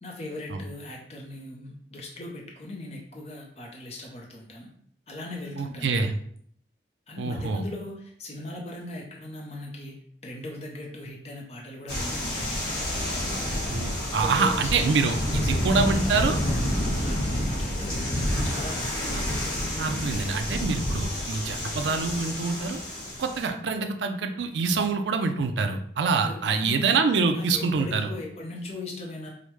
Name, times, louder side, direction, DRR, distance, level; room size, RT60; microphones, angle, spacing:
voice 1, 0.0-4.7 5.1-6.1 7.1-12.6 13.8-19.1 26.1-26.8 27.3-29.3, left 1 dB, 35° left, -1 dB, 0.6 m, -39 dB
voice 2, 5.6-6.1 7.2-7.6 13.7-16.4 19.1-19.2 19.8-22.8 23.2-28.1, right 4 dB, 80° right, 6 dB, 0.4 m, -26 dB
sound 1, 11.9-23.5, left 1 dB, 70° left, 1.3 m, -29 dB
4.9 x 2.1 x 3.1 m, 0.63 s
head